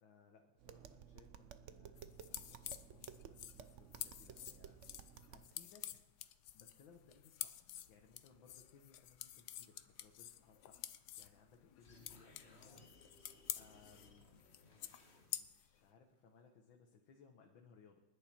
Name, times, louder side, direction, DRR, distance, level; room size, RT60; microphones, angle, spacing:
voice 1, 0.0-6.1 6.5-18.0, left 5 dB, 85° left, 2 dB, 2.0 m, -66 dB
Tap, 0.6-5.5, right 8 dB, 65° right, 0.7 m, -56 dB
sound 1, 2.0-15.8, left 12 dB, 65° left, 1.1 m, -49 dB
sound 2, 11.8-15.6, left 2 dB, 35° left, 2.0 m, -64 dB
28.5 x 10.5 x 4.4 m, 1.1 s
omnidirectional pair, 2.1 m